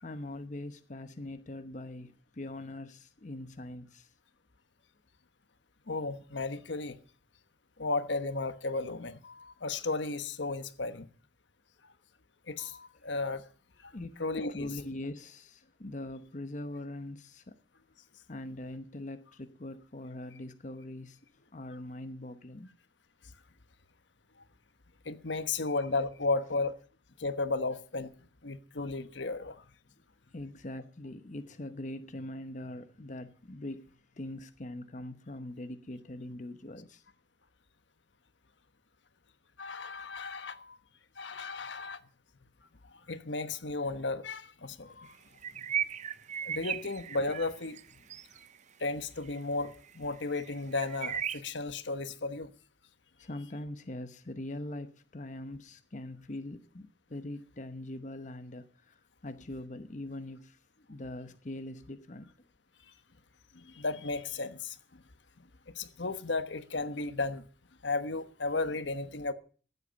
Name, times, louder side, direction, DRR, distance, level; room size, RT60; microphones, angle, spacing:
voice 1, 0.0-4.1 12.9-13.0 13.9-14.2 14.5-17.5 18.3-22.7 29.9-30.0 30.3-37.0 44.8-45.7 48.0-48.2 53.2-62.3, left 1 dB, 45° left, 0.9 m, -42 dB
voice 2, 5.9-7.0 7.8-11.1 12.5-13.5 13.8-13.9 14.2-14.7 25.0-26.8 27.2-28.1 28.4-29.6 39.6-40.8 41.2-42.0 43.1-45.1 46.4-47.8 48.8-52.5 63.5-65.0 65.7-67.4 67.8-69.3, left 3 dB, 90° left, 1.2 m, -34 dB
sound 1, 45.4-47.8 48.1-48.5 49.3-49.4 49.6-49.9 50.3-51.4, right 9 dB, 40° right, 0.5 m, -36 dB
15.0 x 8.1 x 7.0 m
head